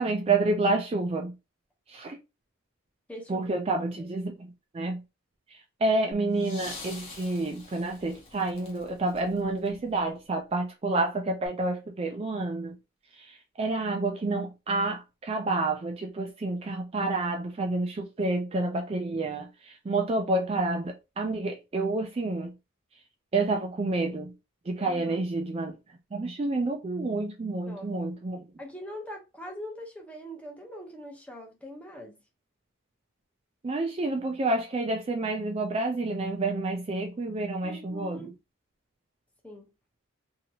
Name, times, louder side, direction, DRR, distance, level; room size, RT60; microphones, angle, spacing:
voice 1, 0.0-1.3 1.9-2.2 3.3-5.0 5.5-12.8 13.1-22.5 23.3-24.3 24.7-25.8 26.1-28.5 33.6-38.3, right 2 dB, 30° right, 0.3 m, -29 dB
voice 2, 3.1-3.5 3.9-4.1 24.8-25.2 27.7-27.9 28.6-32.2 37.6-38.3 39.4-39.7, equal, 5° left, 0.7 m, -42 dB
sound 1, 6.1-10.3 11.4-11.5, left 3 dB, 30° left, 0.9 m, -46 dB
2.8 x 2.8 x 2.7 m
head